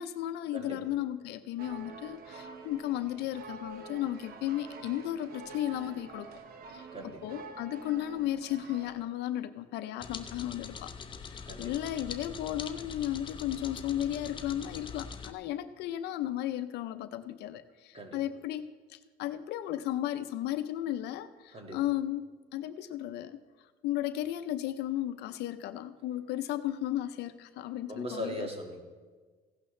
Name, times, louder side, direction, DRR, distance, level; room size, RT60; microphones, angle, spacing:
voice 1, 0.0-6.3 6.7-10.9 11.2-23.4 23.8-28.5, left 12 dB, 80° left, 12 dB, 0.6 m, -35 dB
voice 2, 0.5-0.9 6.9-7.2 11.5-11.7 17.9-18.2 21.5-21.8 27.9-28.8, equal, 35° right, 3 dB, 1.8 m, -39 dB
sound 1, 1.6-9.0, right 4 dB, 60° right, 1.0 m, -47 dB
sound 2, 10.0-15.3, left 6 dB, 30° left, 0.6 m, -43 dB
15.5 x 11.0 x 3.2 m, 1.4 s
cardioid pair, 110°, 17 cm